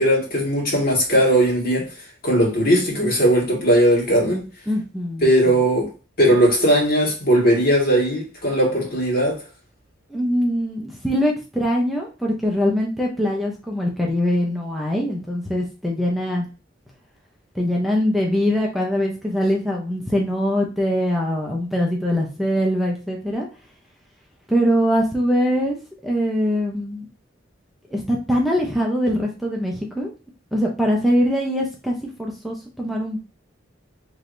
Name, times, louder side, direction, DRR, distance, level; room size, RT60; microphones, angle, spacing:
voice 1, 0.0-1.9 2.2-4.5 5.2-5.9 6.2-9.4, equal, 50° left, 1.9 m, -18 dB
voice 2, 4.7-5.6 10.1-16.5 17.5-23.5 24.5-25.8 26.0-27.1 27.9-30.1 30.5-33.2, equal, ahead, 0.7 m, -22 dB
4.7 x 3.3 x 2.6 m
head